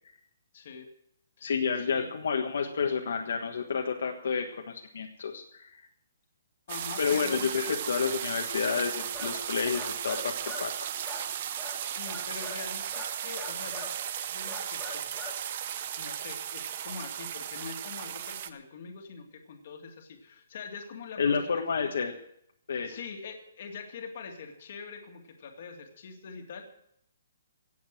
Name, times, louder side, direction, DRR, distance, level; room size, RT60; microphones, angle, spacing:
voice 1, 0.5-0.9 1.4-2.1 6.7-7.7 11.5-14.0 14.3-15.1 16.0-21.5 21.8-21.9 22.8-26.6, left 5 dB, 40° left, 4 dB, 2.2 m, -44 dB
voice 2, 1.4-5.7 7.0-7.6 7.9-10.9 21.2-22.1 22.7-23.0, left 6 dB, 60° left, 2 dB, 1.5 m, -30 dB
sound 1, 6.7-18.5, right 10 dB, 30° right, 0.7 m, -36 dB
sound 2, 8.9-10.7 11.0-12.7 12.9-14.0 14.5-15.4, left 2 dB, 5° left, 1.6 m, -43 dB
17.0 x 7.9 x 7.5 m, 0.72 s
hypercardioid pair, 180°, 0 cm